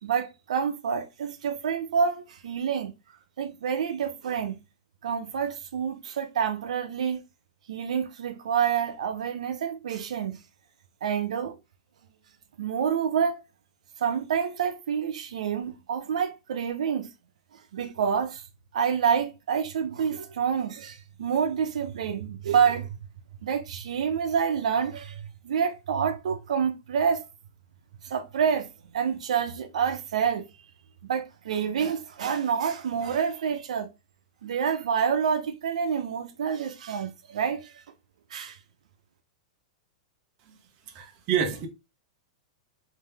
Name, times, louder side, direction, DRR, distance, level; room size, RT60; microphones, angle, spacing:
voice 1, 0.0-2.9 3.4-4.6 5.0-7.2 7.7-10.4 11.0-11.6 12.6-13.4 14.0-17.1 17.7-18.4 18.7-22.9 23.4-27.3 28.0-28.7 28.9-30.5 31.0-33.9 34.4-37.8 38.3-38.6, right 7 dB, 85° right, 0.7 m, -28 dB
voice 2, 40.9-41.7, right 8 dB, 30° right, 0.8 m, -28 dB
3.7 x 2.8 x 3.3 m
supercardioid pair, 165°, 4 cm